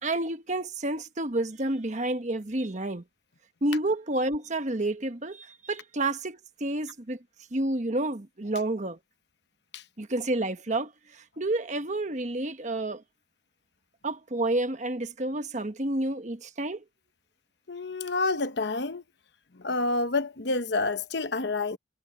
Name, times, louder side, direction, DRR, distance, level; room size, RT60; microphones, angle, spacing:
voice 1, 0.0-3.0 3.6-7.2 7.5-9.0 10.0-13.0 14.0-16.8, right 2 dB, 40° right, 1.3 m, -30 dB
voice 2, 17.7-19.0 19.6-21.8, left 3 dB, 60° left, 1.0 m, -28 dB
head